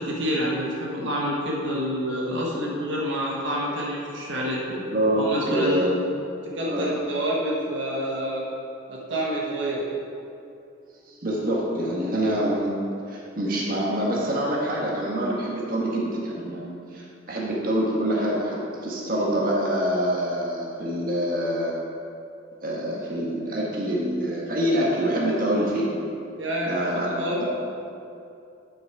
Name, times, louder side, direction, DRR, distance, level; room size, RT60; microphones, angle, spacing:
voice 1, 0.0-4.6 5.1-5.8 6.4-8.5 8.9-9.9 26.4-26.8 27.2-27.4, equal, 70° right, -4 dB, 1.3 m, -28 dB
voice 2, 4.7-6.1 6.6-6.9 11.1-12.8 13.1-21.8 22.6-25.9 26.6-27.4, equal, 45° right, -4 dB, 1.6 m, -26 dB
9.6 x 6.5 x 4.8 m, 2.6 s
head